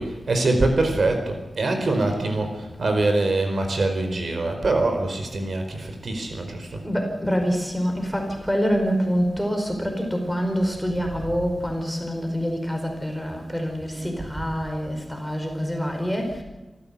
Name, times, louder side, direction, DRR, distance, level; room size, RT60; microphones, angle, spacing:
voice 1, 0.0-6.8, right 2 dB, 60° right, 5 dB, 4.6 m, -24 dB
voice 2, 6.8-16.4, equal, ahead, 3 dB, 4.9 m, -26 dB
27.5 x 15.0 x 8.6 m, 1.1 s
wide cardioid pair, 130°, 0 cm